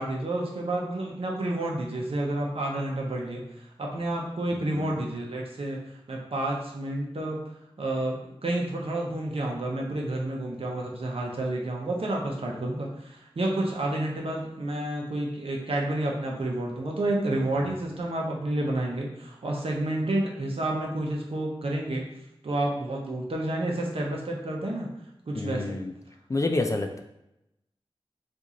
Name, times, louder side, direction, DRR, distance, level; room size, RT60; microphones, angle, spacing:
voice 1, 0.0-3.4 3.8-5.8 6.1-7.4 7.8-22.0 22.4-24.9 25.3-25.8, right 1 dB, 65° right, -1 dB, 0.8 m, -30 dB
voice 2, 4.6-5.0 17.6-17.8 25.3-25.9 26.3-27.0, left 2 dB, 30° left, 5 dB, 0.4 m, -29 dB
3.0 x 2.5 x 3.7 m, 0.85 s
wide cardioid pair, 65°, 10 cm